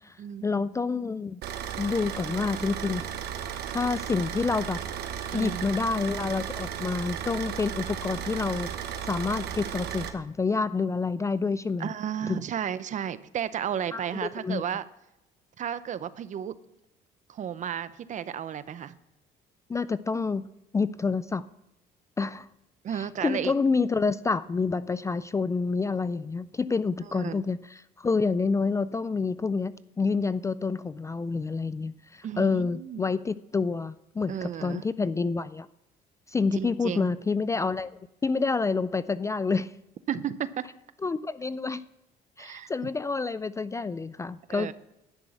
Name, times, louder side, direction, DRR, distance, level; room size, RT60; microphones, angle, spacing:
voice 1, 0.4-1.4 1.8-3.0 3.7-4.8 5.3-8.7 9.0-11.9 12.3-12.4 13.9-14.6 19.7-20.5 20.7-21.5 22.2-22.5 22.9-35.7 36.3-37.9 38.2-39.7 41.0-41.8 42.4-44.7, left 4 dB, 20° left, 16 dB, 0.3 m, -28 dB
Car / Idling, 1.4-10.1, right 9 dB, 70° right, 1.2 m, -35 dB
voice 2, 5.3-5.6 11.8-14.8 15.6-16.5 17.3-18.9 22.8-23.5 27.1-27.4 32.2-33.0 34.3-34.8 36.5-37.1 40.1-40.7 42.4-42.7 44.5-44.7, right 9 dB, 45° right, 15 dB, 0.6 m, -33 dB
11.0 x 6.1 x 8.2 m, 0.87 s
cardioid pair, 110°, 17 cm